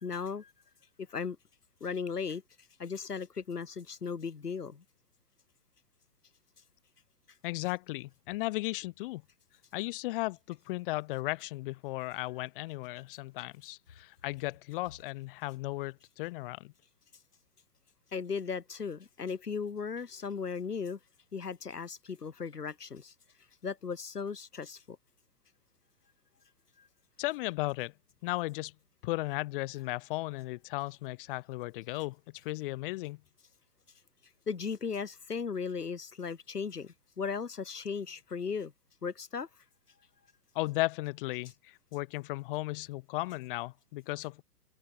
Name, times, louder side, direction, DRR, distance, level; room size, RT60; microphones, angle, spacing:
voice 1, 0.0-0.5 1.1-1.4 1.8-2.4 2.8-4.8 18.1-21.0 21.3-23.1 23.6-25.0 34.5-38.7 39.0-39.5, left 5 dB, 85° left, 1.3 m, -36 dB
voice 2, 7.4-9.2 9.7-16.7 27.2-27.9 28.2-28.7 29.0-32.2 32.4-33.2 40.5-44.4, left 20 dB, 35° left, 2.4 m, -35 dB
figure-of-eight pair, 120°, 46 cm